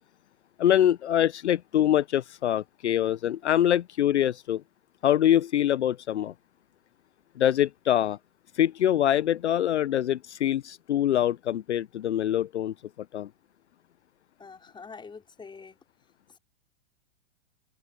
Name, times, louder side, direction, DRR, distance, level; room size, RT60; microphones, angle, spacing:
voice 1, 0.6-4.6 5.0-6.3 7.4-8.2 8.5-12.7 13.1-13.3, left 11 dB, 65° left, 1.0 m, -24 dB
voice 2, 14.4-15.8, left 5 dB, 10° left, 5.6 m, -45 dB
open air
figure-of-eight pair, 100°, 38 cm